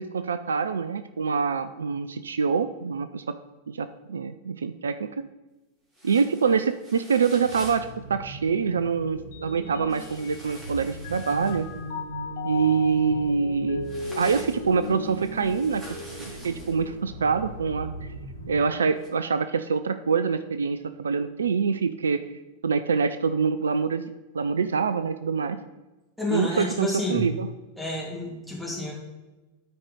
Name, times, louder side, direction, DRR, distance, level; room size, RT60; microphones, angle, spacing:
voice 1, 0.0-3.3 3.7-5.2 6.0-11.7 12.4-13.9 14.2-17.9 18.5-22.2 22.6-24.0 24.3-25.6 26.3-27.5, right 5 dB, 70° right, 12 dB, 0.4 m, -25 dB
sound 1, 5.9-7.9 9.9-11.7 13.8-16.8 19.0-19.1, equal, 25° right, 2.5 m, -46 dB
sound 2, 7.4-18.7, right 1 dB, 90° right, 1.3 m, -40 dB
Mallet percussion, 9.3-10.7 11.0-16.5, left 5 dB, 60° left, 0.8 m, -38 dB
voice 2, 26.2-27.3 27.8-28.9, left 2 dB, ahead, -5 dB, 2.7 m, -29 dB
12.5 x 4.7 x 3.9 m, 1.1 s
figure-of-eight pair, 90°, 0 cm